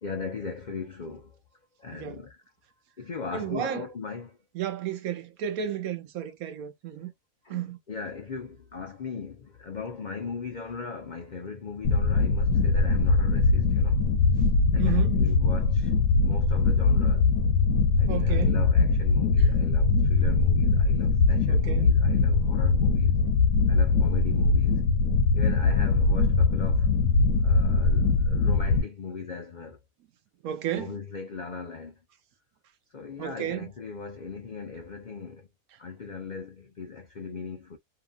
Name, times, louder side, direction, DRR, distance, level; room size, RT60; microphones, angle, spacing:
voice 1, 0.0-1.4 1.8-2.4 3.0-4.4 7.4-14.1 14.7-15.9 16.2-17.3 18.0-23.2 23.7-24.8 25.3-26.9 27.4-29.8 30.7-32.0 32.9-35.5 35.8-37.8, left 5 dB, 70° left, 0.4 m, -38 dB
voice 2, 1.9-2.2 3.3-3.9 4.5-7.1 7.5-7.8 14.8-15.2 18.1-18.6 21.5-21.9 30.4-31.0 33.2-33.7, right 10 dB, 75° right, 1.1 m, -32 dB
sound 1, 11.8-28.8, left 4 dB, 85° left, 1.1 m, -22 dB
2.9 x 2.5 x 2.3 m
omnidirectional pair, 1.6 m